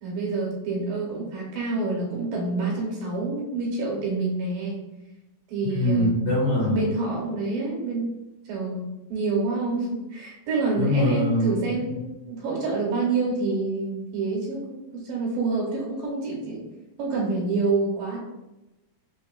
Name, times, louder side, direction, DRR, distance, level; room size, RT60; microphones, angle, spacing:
voice 1, 0.0-4.8 5.5-6.3 6.7-8.2 8.5-16.7 17.0-18.2, right 3 dB, 75° right, -3 dB, 2.3 m, -27 dB
voice 2, 5.7-6.8 10.8-12.0, left 1 dB, 50° left, -10 dB, 1.9 m, -23 dB
6.0 x 2.7 x 2.3 m, 0.99 s
omnidirectional pair, 4.3 m